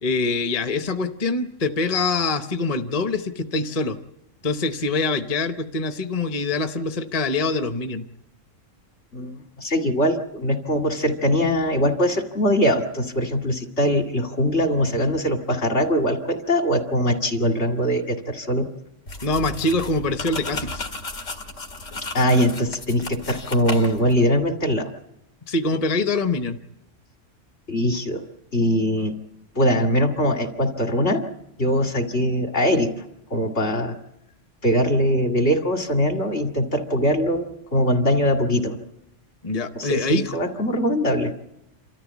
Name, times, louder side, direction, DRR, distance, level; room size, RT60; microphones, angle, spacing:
voice 1, 0.0-4.0 4.4-8.0 19.2-20.9 25.4-26.6 39.4-40.4, left 3 dB, 35° left, 8 dB, 0.8 m, -24 dB
voice 2, 9.1-18.7 22.1-24.9 27.7-28.2 28.5-29.2 29.6-31.2 31.6-32.9 33.3-34.0 34.6-38.8 39.7-41.3, equal, 60° left, 4 dB, 2.4 m, -22 dB
sound 1, 19.1-24.2, left 2 dB, 85° left, 2.4 m, -34 dB
28.0 x 13.5 x 8.3 m, 0.84 s
omnidirectional pair, 1.3 m